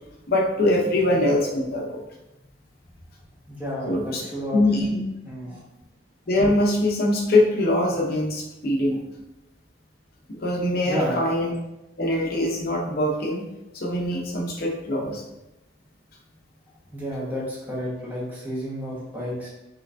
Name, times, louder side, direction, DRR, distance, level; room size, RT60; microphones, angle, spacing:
voice 1, 0.3-2.0 3.9-4.2 4.5-5.0 6.3-9.0 10.3-11.5 12.0-13.4 13.7-15.2, left 1 dB, 50° left, -1 dB, 0.7 m, -23 dB
voice 2, 3.5-4.6 5.3-5.6 10.8-11.2 16.9-19.5, equal, 10° right, -6 dB, 1.2 m, -31 dB
5.6 x 3.1 x 2.5 m, 0.95 s
head